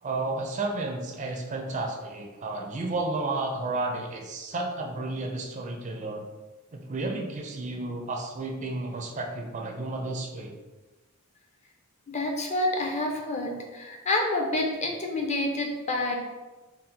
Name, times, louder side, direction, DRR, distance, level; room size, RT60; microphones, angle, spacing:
voice 1, 0.0-6.3 6.7-10.5, right 2 dB, 35° right, 2 dB, 0.4 m, -32 dB
voice 2, 12.1-16.2, left 2 dB, 30° left, 2 dB, 0.5 m, -28 dB
4.2 x 2.1 x 3.8 m, 1.2 s
head